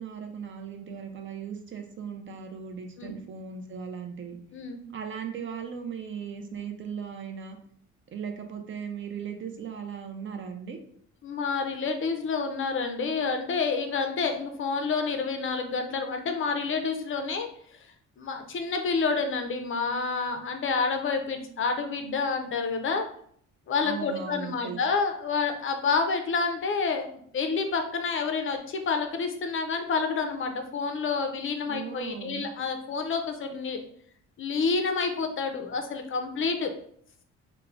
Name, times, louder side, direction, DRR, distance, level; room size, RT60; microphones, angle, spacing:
voice 1, 0.0-4.4 4.9-7.6 8.1-10.8 23.8-24.8 31.7-32.5, right 7 dB, 40° right, 5 dB, 0.4 m, -37 dB
voice 2, 11.2-17.5 17.7-17.9 18.2-23.1 23.7-33.8 34.4-36.7, left 4 dB, 45° left, 5 dB, 0.4 m, -29 dB
3.1 x 2.1 x 2.3 m, 0.63 s
cardioid pair, 90°, 30 cm